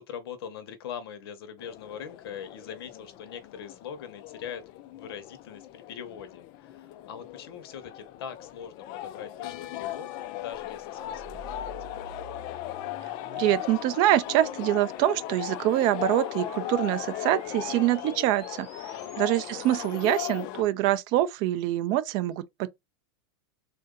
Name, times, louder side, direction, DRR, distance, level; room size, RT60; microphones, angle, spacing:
voice 1, 0.0-11.8 18.9-19.1, left 8 dB, 70° left, 1.0 m, -42 dB
sound 1, 1.6-20.6, left 13 dB, 35° left, 0.3 m, -38 dB
sound 2, 10.5-20.4, right 1 dB, 20° right, 2.5 m, -50 dB
voice 2, 13.4-18.7 19.2-22.7, right 14 dB, 35° right, 0.4 m, -25 dB
3.7 x 2.6 x 3.7 m
supercardioid pair, 155°, 13 cm